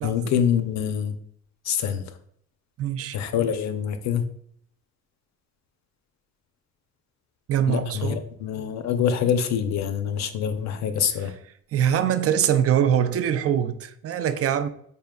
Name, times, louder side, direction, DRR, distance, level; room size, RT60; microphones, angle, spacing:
voice 1, 0.0-1.2 1.6-2.0 3.1-4.2 7.7-11.3, left 8 dB, 65° left, 0.6 m, -25 dB
voice 2, 2.8-3.2 7.5-8.2 11.2-11.3 11.7-14.7, right 9 dB, 50° right, 0.4 m, -23 dB
4.2 x 3.6 x 2.2 m
cardioid pair, 90°, 30 cm